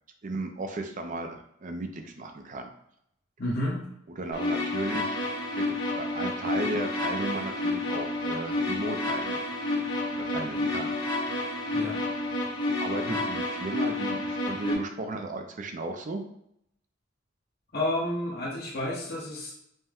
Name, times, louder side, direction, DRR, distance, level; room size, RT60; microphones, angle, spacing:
voice 1, 0.2-2.7 4.1-9.4 10.1-10.9 12.8-16.2, right 2 dB, 40° right, 5 dB, 0.5 m, -35 dB
voice 2, 3.4-3.9 11.7-12.0 13.1-13.2 17.7-19.5, left 1 dB, 55° left, -5 dB, 1.0 m, -30 dB
sound 1, 4.3-14.7, left 2 dB, 80° left, 1.6 m, -30 dB
5.4 x 2.1 x 3.5 m, 0.75 s
head